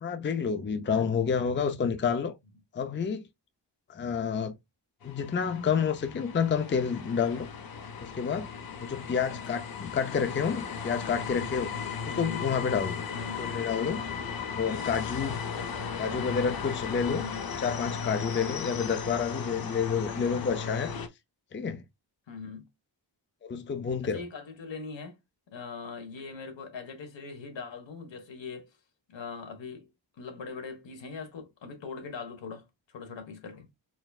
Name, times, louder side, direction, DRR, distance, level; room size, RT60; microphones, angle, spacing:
voice 1, 0.0-2.3 2.7-3.3 3.9-4.6 5.0-7.5 8.0-8.5 8.8-13.0 13.4-14.0 14.5-15.4 16.0-17.2 17.6-20.9 21.5-21.8 23.4-24.2, left 6 dB, 25° left, 0.5 m, -29 dB
sound 1, 5.0-21.1, left 6 dB, 55° left, 0.8 m, -36 dB
voice 2, 9.3-9.7 12.1-12.5 13.1-13.5 15.5-16.2 17.2-17.5 20.1-20.4 22.3-22.7 24.0-25.2 25.5-28.8 29.1-33.7, left 4 dB, 80° left, 1.5 m, -42 dB
4.4 x 3.4 x 2.3 m
wide cardioid pair, 135°, 44 cm